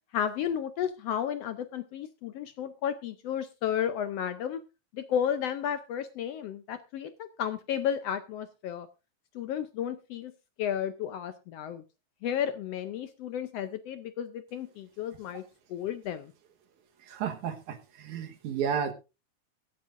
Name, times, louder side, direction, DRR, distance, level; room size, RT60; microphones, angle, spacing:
voice 1, 0.1-4.6 4.9-8.9 9.3-10.3 10.6-11.8 12.2-15.4 15.7-16.3, left 9 dB, 75° left, 10 dB, 1.5 m, -33 dB
voice 2, 17.1-18.9, right 8 dB, 85° right, 6 dB, 2.7 m, -32 dB
22.5 x 8.7 x 2.5 m, 0.28 s
omnidirectional pair, 3.4 m